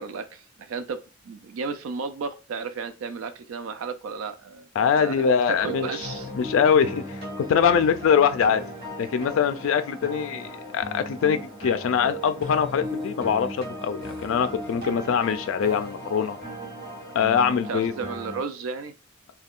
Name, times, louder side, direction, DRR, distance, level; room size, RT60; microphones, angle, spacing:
voice 1, 0.0-4.7 5.0-5.2 5.5-6.3 17.7-18.9, right 4 dB, 80° right, 0.4 m, -33 dB
voice 2, 4.8-5.9 6.3-8.6 9.0-16.4 17.1-17.9, left 7 dB, 70° left, 0.3 m, -23 dB
sound 1, 5.6-18.4, equal, 50° right, 1.2 m, -36 dB
2.4 x 2.2 x 3.5 m
head